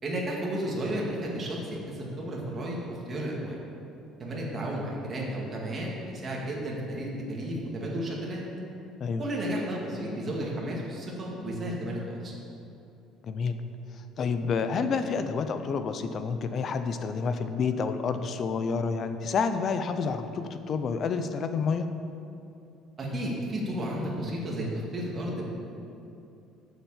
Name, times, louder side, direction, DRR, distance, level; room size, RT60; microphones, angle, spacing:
voice 1, 0.0-3.6 4.2-8.4 9.2-12.3 23.0-25.5, right 1 dB, 25° right, -3 dB, 2.0 m, -33 dB
voice 2, 13.2-13.6 14.2-21.9, left 5 dB, 35° left, 9 dB, 0.6 m, -29 dB
9.0 x 7.3 x 7.4 m, 2.7 s
cardioid pair, 165°, 0 cm